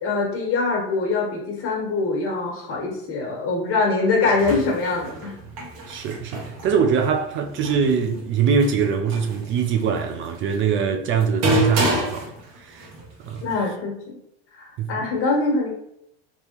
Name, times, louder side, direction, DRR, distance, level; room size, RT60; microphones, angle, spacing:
voice 1, 0.0-5.4 13.4-14.2 14.5-15.7, left 3 dB, 50° left, 1.3 m, -23 dB
sound 1, 4.2-13.5, right 1 dB, 65° right, 1.3 m, -29 dB
voice 2, 5.9-12.9 13.3-13.4 14.8-15.0, right 6 dB, 45° right, 0.4 m, -23 dB
3.5 x 2.9 x 2.9 m
supercardioid pair, 105°, 29 cm